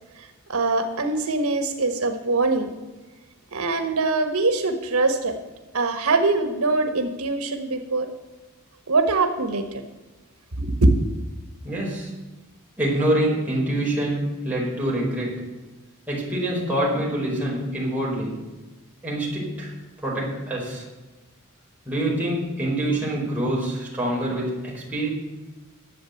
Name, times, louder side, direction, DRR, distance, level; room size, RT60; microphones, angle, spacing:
voice 1, 0.2-2.7 3.5-5.4 5.7-8.1 8.9-9.8 10.6-10.9, right 3 dB, 85° right, 6 dB, 1.3 m, -23 dB
voice 2, 11.6-12.1 12.8-15.4 16.1-18.4 19.0-19.7 20.0-20.9 21.8-25.1, right 1 dB, 5° right, -5 dB, 4.8 m, -25 dB
11.5 x 7.8 x 7.9 m, 1.2 s
head